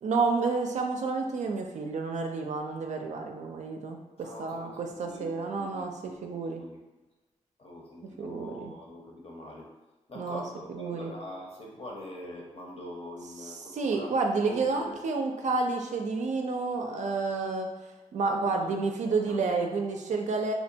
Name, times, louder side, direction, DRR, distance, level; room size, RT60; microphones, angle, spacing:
voice 1, 0.0-5.9 6.2-6.6 8.2-8.7 10.2-10.4 10.7-11.1 13.7-17.7 18.1-20.5, right 4 dB, 65° right, 3 dB, 0.4 m, -30 dB
voice 2, 4.2-6.8 7.6-9.7 10.1-14.1 14.5-15.0 18.2-19.5, left 1 dB, 50° left, -2 dB, 0.8 m, -44 dB
2.7 x 2.1 x 2.7 m, 1.1 s
cardioid pair, 55°, 13 cm